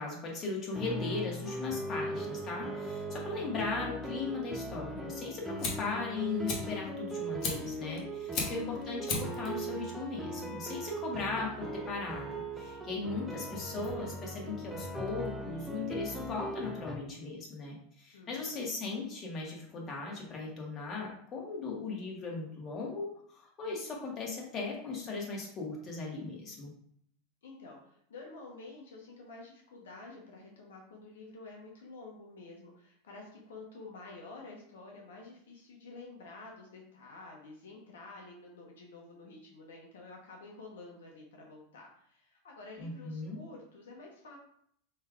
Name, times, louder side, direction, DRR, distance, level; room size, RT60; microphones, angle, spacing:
voice 1, 0.0-26.7 42.8-43.4, left 4 dB, 35° left, -2 dB, 1.6 m, -38 dB
sound 1, 0.7-17.0, right 1 dB, 5° right, 0.7 m, -39 dB
Fire, 5.2-15.6, left 3 dB, 55° left, 1.2 m, -41 dB
voice 2, 18.1-18.6 27.4-44.4, left 3 dB, 85° left, 0 dB, 1.0 m, -50 dB
5.4 x 3.3 x 2.4 m, 0.67 s
hypercardioid pair, 110°, 0 cm